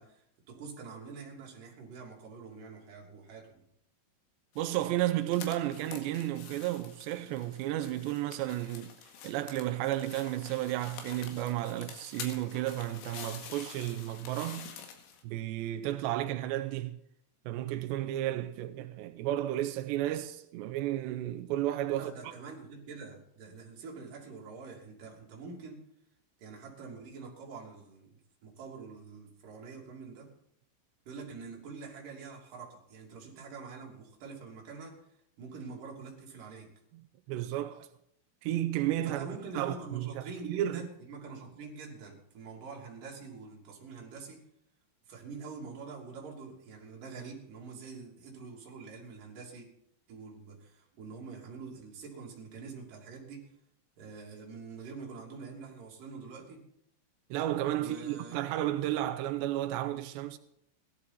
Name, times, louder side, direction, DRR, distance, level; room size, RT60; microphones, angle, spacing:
voice 1, 0.0-3.6 21.9-25.8 26.4-30.3 31.1-35.0 35.4-36.7 39.0-44.4 45.1-49.7 50.1-53.5 54.0-56.6 57.8-58.6, right 4 dB, 45° right, 4.1 m, -46 dB
sound 1, 4.5-15.2, left 7 dB, 80° left, 4.5 m, -48 dB
voice 2, 4.6-8.9 9.2-14.7 15.2-17.0 17.5-22.3 37.3-37.9 38.4-39.2 39.6-40.9 57.3-60.4, right 13 dB, 90° right, 2.5 m, -33 dB
17.0 x 12.0 x 4.2 m
omnidirectional pair, 5.9 m